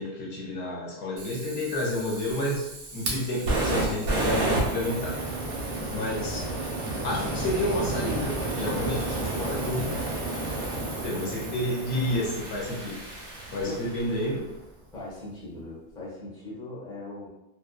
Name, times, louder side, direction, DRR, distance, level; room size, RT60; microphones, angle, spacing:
voice 1, 0.0-5.2 5.9-6.4 7.0-9.9 10.8-13.0 13.5-14.4, left 1 dB, 70° left, -3 dB, 0.8 m, -30 dB
Fire, 1.2-14.3, right 2 dB, 85° right, 1.0 m, -31 dB
voice 2, 14.9-17.3, left 2 dB, 5° left, -7 dB, 0.6 m, -40 dB
2.7 x 2.2 x 2.2 m, 0.92 s
omnidirectional pair, 1.2 m